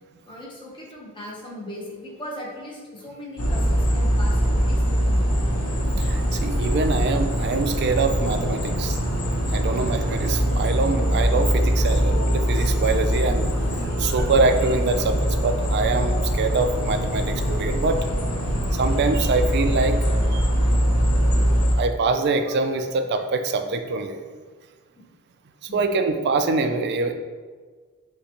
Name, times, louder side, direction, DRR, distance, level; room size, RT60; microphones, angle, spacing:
voice 1, 0.3-5.2 9.6-9.9 11.0-11.2 25.0-25.1 25.7-25.9, left 1 dB, 20° left, -3 dB, 0.9 m, -39 dB
sound 1, 3.4-21.8, equal, 80° left, 0.8 m, -22 dB
voice 2, 5.9-18.1 18.7-20.0 20.3-20.5 21.8-24.2 25.6-27.1, right 3 dB, 50° right, 7 dB, 0.4 m, -24 dB
6.4 x 2.2 x 2.9 m, 1.5 s
head